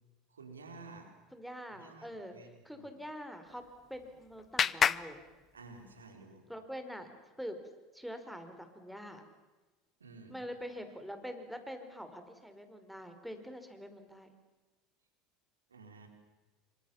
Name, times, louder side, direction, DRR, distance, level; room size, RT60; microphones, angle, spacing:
voice 1, 0.3-1.1 1.8-2.9 5.5-6.4 10.0-10.3 15.7-16.1, right 3 dB, 90° right, 5 dB, 4.7 m, -52 dB
voice 2, 1.3-2.3 2.6-3.6 3.9-5.2 6.5-7.1 7.4-7.6 7.9-9.2 10.3-14.3, equal, ahead, 7 dB, 5.0 m, -45 dB
Clapping, 3.5-6.1, left 8 dB, 35° left, 0.9 m, -34 dB
27.5 x 25.0 x 7.4 m, 1.2 s
hypercardioid pair, 75°, 0 cm